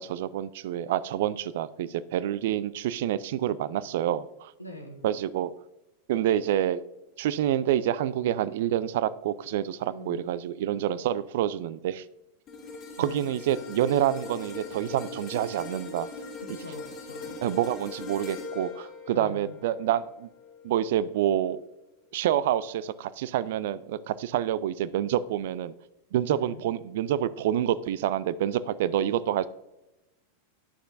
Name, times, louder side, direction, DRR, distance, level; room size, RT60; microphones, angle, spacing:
voice 1, 0.0-4.5 5.0-5.5 6.1-6.8 7.2-12.0 13.0-16.1 17.4-20.3 20.6-21.6 22.1-25.7 26.1-29.5, right 11 dB, 55° right, 17 dB, 0.3 m, -27 dB
voice 2, 4.6-5.1 9.9-10.3 13.0-13.3 16.4-17.4 19.1-19.6 26.3-26.6, left 1 dB, 85° left, 3 dB, 1.1 m, -43 dB
sound 1, 12.5-20.8 21.3-21.5, left 4 dB, 30° left, 2.1 m, -41 dB
9.9 x 6.4 x 2.6 m, 0.95 s
figure-of-eight pair, 90°, 0 cm